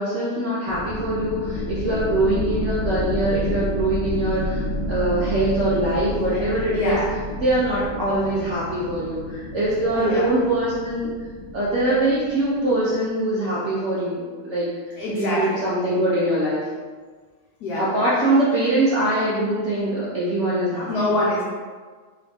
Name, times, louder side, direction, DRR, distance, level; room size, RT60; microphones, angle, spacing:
voice 1, 0.0-4.6 4.9-7.0 7.4-11.1 11.5-14.7 15.2-16.6 17.8-20.9, right 1 dB, 65° right, -8 dB, 0.7 m, -23 dB
sound 1, 0.7-12.9, left 1 dB, 90° left, 1.3 m, -30 dB
voice 2, 2.2-2.7 6.3-6.4 6.7-7.1 9.9-10.4 15.0-15.7 17.6-17.9 20.7-21.4, left 1 dB, 65° left, -7 dB, 1.1 m, -25 dB
3.1 x 3.0 x 3.4 m, 1.5 s
omnidirectional pair, 2.0 m